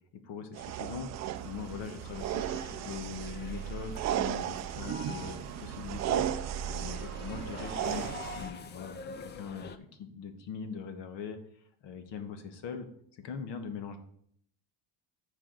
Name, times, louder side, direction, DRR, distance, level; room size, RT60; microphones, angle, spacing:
voice 1, 0.2-1.1 1.4-6.3 6.7-12.9 13.1-14.0, left 6 dB, 60° left, 8 dB, 1.3 m, -41 dB
sound 1, 0.5-8.5, right 11 dB, 40° right, 0.4 m, -35 dB
sound 2, 1.3-9.8, left 5 dB, 25° left, 0.4 m, -47 dB
13.5 x 4.9 x 3.9 m, 0.68 s
cardioid pair, 140°, 46 cm